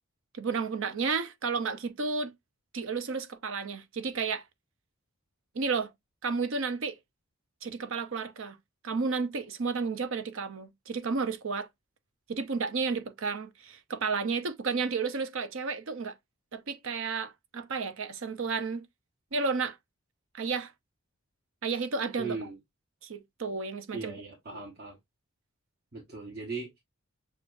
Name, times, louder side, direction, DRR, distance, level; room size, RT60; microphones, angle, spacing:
voice 1, 0.3-2.3 2.7-4.4 5.5-5.9 6.2-7.0 7.6-8.6 8.8-11.7 12.3-16.2 16.5-18.9 19.3-19.8 20.3-20.7 21.6-22.4 23.0-24.1 24.5-24.6, right 4 dB, 60° right, 0.6 m, -32 dB
voice 2, 22.2-22.6 23.9-25.0 25.9-26.8, right 4 dB, 45° right, 1.0 m, -38 dB
6.5 x 2.4 x 2.5 m
head